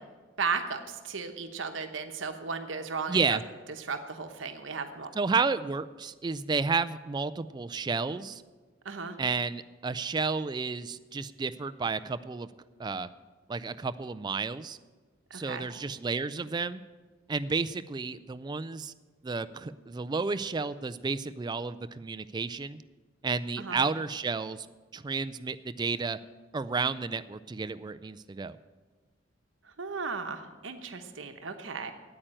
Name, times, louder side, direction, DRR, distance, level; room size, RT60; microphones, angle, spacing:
voice 1, 0.4-3.4 3.8-5.1 8.8-9.2 15.3-15.7 23.6-23.8 29.8-31.9, right 5 dB, 75° right, 6 dB, 0.9 m, -35 dB
voice 2, 3.1-3.4 5.1-8.4 9.2-12.5 12.8-13.1 13.5-14.8 15.3-16.8 17.3-18.9 19.2-22.8 23.2-24.7 24.9-26.2 26.5-28.5, right 4 dB, 20° right, 13 dB, 0.3 m, -31 dB
9.0 x 8.7 x 8.8 m, 1.3 s
head